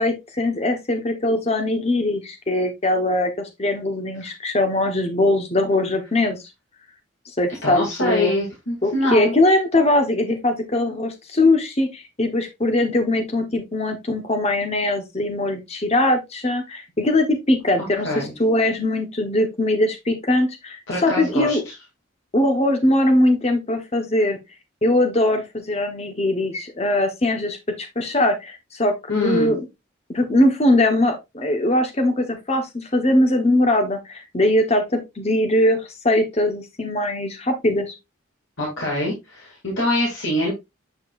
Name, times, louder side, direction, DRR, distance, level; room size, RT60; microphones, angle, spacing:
voice 1, 0.0-6.4 7.4-8.3 8.8-21.6 22.3-24.4 24.8-29.7 30.1-37.9, left 1 dB, 30° left, 6 dB, 1.0 m, -21 dB
voice 2, 7.6-9.3 18.0-18.3 20.9-21.6 29.1-29.5 38.6-40.5, left 1 dB, 65° left, -4 dB, 2.5 m, -24 dB
8.0 x 5.2 x 2.4 m, 0.21 s
head